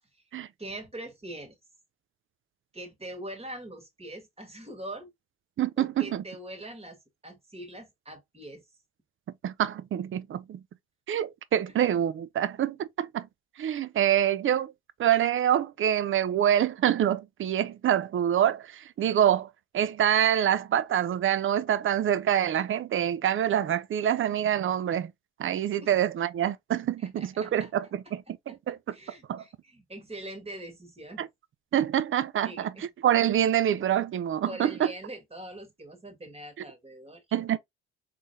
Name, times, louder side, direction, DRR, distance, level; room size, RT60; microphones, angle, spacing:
voice 1, 0.6-1.6 2.7-5.1 5.8-8.6 25.8-25.9 27.0-27.7 28.5-31.2 32.4-32.9 34.5-37.6, right 1 dB, 20° right, 1.8 m, -43 dB
voice 2, 5.6-6.2 9.4-10.6 11.1-13.3 13.6-14.7 15.0-19.5 19.7-25.1 25.4-28.8 29.3-29.4 31.2-31.3 31.7-32.7 33.0-34.9 37.3-37.6, right 10 dB, 40° right, 0.5 m, -26 dB
3.5 x 3.3 x 2.6 m
supercardioid pair, 65°, 32 cm